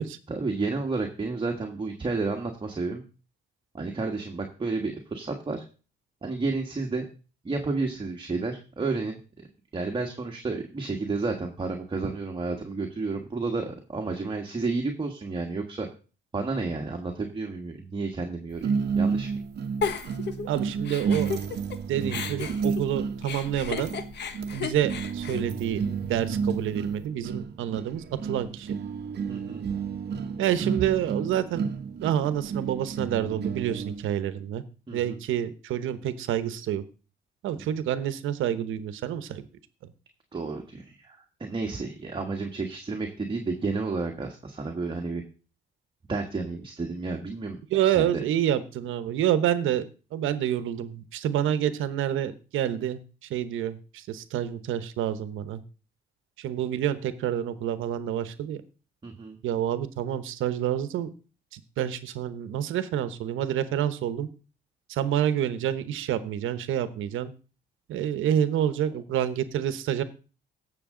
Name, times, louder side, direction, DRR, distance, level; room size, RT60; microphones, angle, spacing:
voice 1, 0.0-3.0 3.7-5.6 6.2-7.1 7.4-9.2 9.7-15.9 16.3-19.4 29.3-29.7 34.9-35.2 40.3-45.2 46.1-47.6 47.8-48.2 59.0-59.4, right 3 dB, 25° right, 2 dB, 1.5 m, -31 dB
sound 1, 18.6-34.1, right 6 dB, 55° right, 1.0 m, -31 dB
Giggle, 19.8-21.8 22.1-26.3, left 6 dB, 60° left, 1.2 m, -34 dB
voice 2, 20.5-21.3 21.9-23.9 24.5-28.8 30.4-31.7 32.0-34.6 34.9-36.8 37.4-39.5 47.7-55.6 56.4-58.6 59.4-61.1 61.5-64.3 64.9-67.3 67.9-70.0, right 10 dB, 85° right, 13 dB, 1.0 m, -28 dB
16.0 x 6.6 x 3.8 m, 0.35 s
cardioid pair, 90°, 20 cm